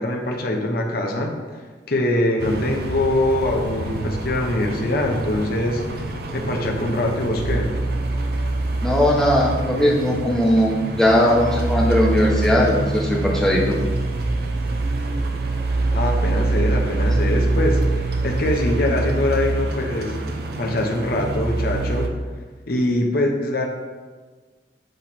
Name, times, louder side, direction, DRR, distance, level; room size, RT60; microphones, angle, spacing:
voice 1, 0.0-1.4 1.9-7.8 15.9-20.2 20.6-22.1 22.7-23.7, left 1 dB, 55° left, 1 dB, 0.9 m, -23 dB
sound 1, 2.4-22.1, right 2 dB, 60° right, 0.6 m, -25 dB
voice 2, 8.8-13.8, left 1 dB, 5° left, -3 dB, 0.8 m, -19 dB
7.7 x 3.2 x 4.2 m, 1.4 s
head